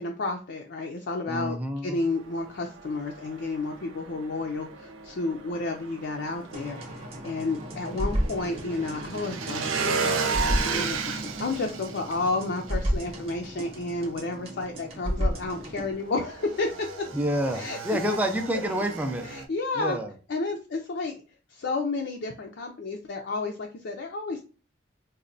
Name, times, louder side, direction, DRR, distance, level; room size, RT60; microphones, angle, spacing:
voice 1, 0.0-1.6 1.8-16.9 17.5-18.2 19.2-20.0 20.3-21.2 21.5-24.4, left 3 dB, 60° left, 2 dB, 0.4 m, -31 dB
voice 2, 1.3-2.0 17.1-19.3 19.7-20.1, equal, 10° right, 5 dB, 0.4 m, -28 dB
Motorcycle / Engine, 2.0-19.4, right 5 dB, 90° right, 0.5 m, -35 dB
sound 1, 6.5-15.9, equal, 30° right, 0.8 m, -33 dB
4.1 x 2.2 x 2.5 m, 0.36 s
head